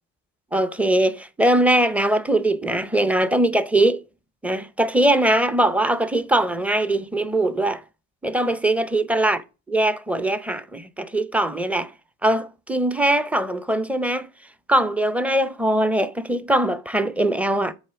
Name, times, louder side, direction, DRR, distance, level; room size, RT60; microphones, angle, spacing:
voice 1, 0.5-4.0 4.4-7.8 8.2-9.4 9.7-11.9 12.2-14.3 14.7-17.7, right 1 dB, 5° right, 0.6 m, -21 dB
7.9 x 3.1 x 5.7 m
supercardioid pair, 80°, 47 cm